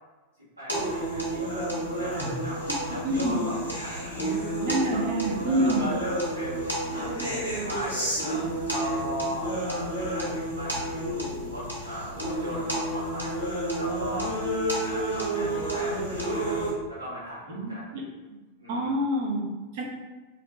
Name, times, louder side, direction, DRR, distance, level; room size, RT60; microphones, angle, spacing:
voice 1, 0.6-2.6 2.9-4.5 4.9-5.3 5.6-6.7 7.4-8.2 8.7-16.6 16.9-18.0 18.6-19.0, equal, 85° right, -14 dB, 1.0 m, -38 dB
sound 1, 0.7-16.7, right 1 dB, 85° left, 0.6 m, -30 dB
voice 2, 3.0-3.4 4.6-5.9 17.5-18.0 18.7-19.8, right 1 dB, 50° right, -1 dB, 0.5 m, -27 dB
sound 2, 11.0-12.7, left 7 dB, 20° left, 0.5 m, -41 dB
2.5 x 2.1 x 2.4 m, 1.2 s
figure-of-eight pair, 90°, 0 cm